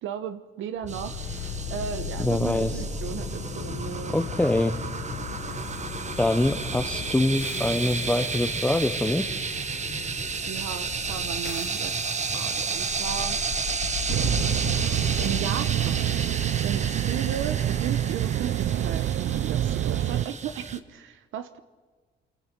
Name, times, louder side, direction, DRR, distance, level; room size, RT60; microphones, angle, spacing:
voice 1, 0.0-1.2 1.7-4.2 10.5-12.0 12.3-13.4 14.9-16.2 16.6-21.6, right 9 dB, 80° right, 11 dB, 1.1 m, -35 dB
sound 1, 0.8-18.9, left 7 dB, 80° left, 1.9 m, -37 dB
sound 2, 0.9-20.8, right 5 dB, 35° right, 1.3 m, -32 dB
voice 2, 2.2-2.8 4.1-4.8 6.2-9.5, left 1 dB, 5° left, 6 dB, 0.9 m, -24 dB
sound 3, 14.1-20.3, right 11 dB, 65° right, 0.6 m, -26 dB
28.0 x 24.5 x 6.1 m, 1.4 s
cardioid pair, 90°, 20 cm